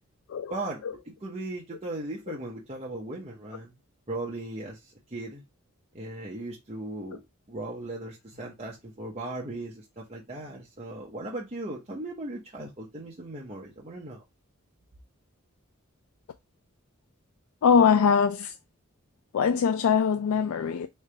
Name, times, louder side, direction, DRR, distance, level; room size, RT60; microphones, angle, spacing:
voice 1, 0.5-0.8 1.2-3.7 4.1-5.4 5.9-7.2 7.5-14.2, right 2 dB, 30° right, 0.8 m, -37 dB
voice 2, 17.6-18.5 19.3-20.9, left 6 dB, 80° left, 0.4 m, -22 dB
3.8 x 3.3 x 3.2 m
head